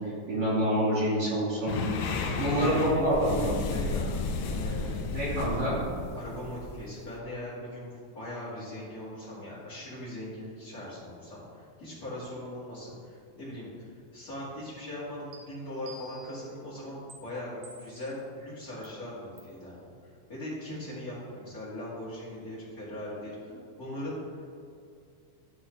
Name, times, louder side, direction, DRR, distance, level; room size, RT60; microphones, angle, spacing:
voice 1, 0.0-1.8 2.4-3.4 5.1-5.8, right 1 dB, 55° right, -11 dB, 3.2 m, -27 dB
sound 1, 1.7-7.2, left 4 dB, 90° left, 1.5 m, -33 dB
voice 2, 2.2-4.2 4.5-5.0 6.1-24.5, left 1 dB, 30° left, -11 dB, 2.2 m, -40 dB
sound 2, 15.3-15.4 15.9-16.5 17.1-17.2 17.6-18.2 18.8-18.9 19.4-19.6, right 2 dB, 70° right, 2.5 m, -49 dB
13.0 x 4.3 x 3.9 m, 2.3 s
omnidirectional pair, 3.9 m